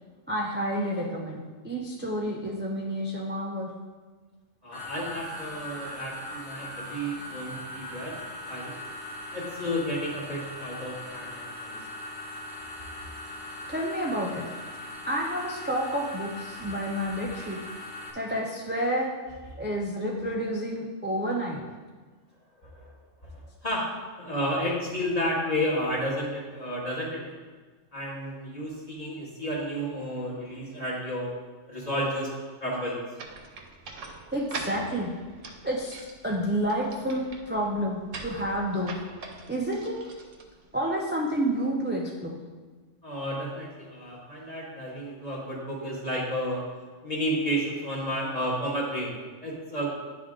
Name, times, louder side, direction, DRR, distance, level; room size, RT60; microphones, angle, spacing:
voice 1, 0.3-3.7 13.7-14.4 15.1-17.6 18.1-19.1 19.5-21.6 34.3-35.1 35.6-36.0 36.2-39.0 39.5-40.0 40.7-42.4, equal, 15° right, -3 dB, 0.3 m, -29 dB
voice 2, 4.6-8.2 8.5-8.7 9.3-11.8 22.6-22.9 23.2-23.9 24.2-27.3 27.9-31.3 31.7-33.0 43.0-46.6 47.0-49.9, equal, 30° left, -5 dB, 1.7 m, -32 dB
sound 1, 4.7-18.1, left 1 dB, 60° left, 1.3 m, -40 dB
sound 2, 33.2-41.0, right 3 dB, 75° right, 1.2 m, -43 dB
10.0 x 3.5 x 3.7 m, 1.4 s
omnidirectional pair, 1.3 m